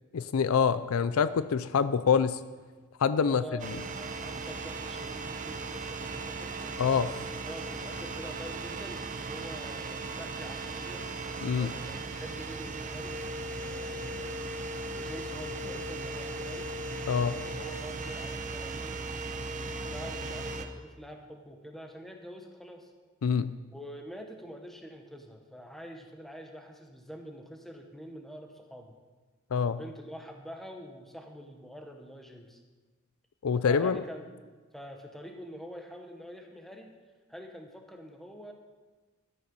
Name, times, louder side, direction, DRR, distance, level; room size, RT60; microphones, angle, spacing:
voice 1, 0.1-2.4 3.0-3.4 6.8-7.1 11.4-11.7 17.1-17.3 23.2-23.5 29.5-29.8 33.4-34.0, left 6 dB, 70° left, 14 dB, 0.4 m, -25 dB
voice 2, 3.2-6.8 7.2-11.1 11.6-14.4 14.9-16.7 17.0-19.0 19.5-22.9 23.7-28.9 29.6-32.6 33.6-34.2 34.7-36.9 37.3-38.5, equal, ahead, 3 dB, 1.2 m, -45 dB
sound 1, 3.6-20.7, right 3 dB, 35° right, 0.8 m, -37 dB
13.5 x 9.6 x 5.4 m, 1.4 s
head